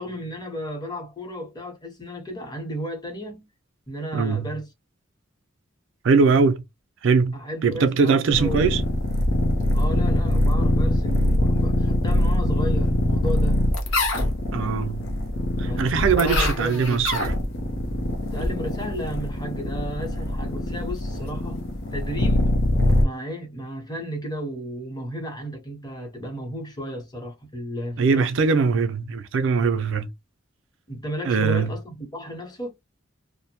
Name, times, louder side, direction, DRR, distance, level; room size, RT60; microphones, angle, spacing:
voice 1, 0.0-3.5 3.9-4.7 7.3-8.7 9.7-13.6 15.6-17.1 18.3-21.6 21.9-22.5 23.0-28.3 30.9-32.7, equal, 20° left, 0.8 m, -33 dB
voice 2, 4.1-4.5 6.0-6.6 7.0-8.8 14.5-15.1 15.6-17.3 28.0-30.1 31.2-31.7, right 5 dB, 65° right, 0.4 m, -21 dB
sound 1, 8.3-23.0, left 1 dB, 75° left, 0.7 m, -23 dB
2.5 x 2.0 x 2.8 m
head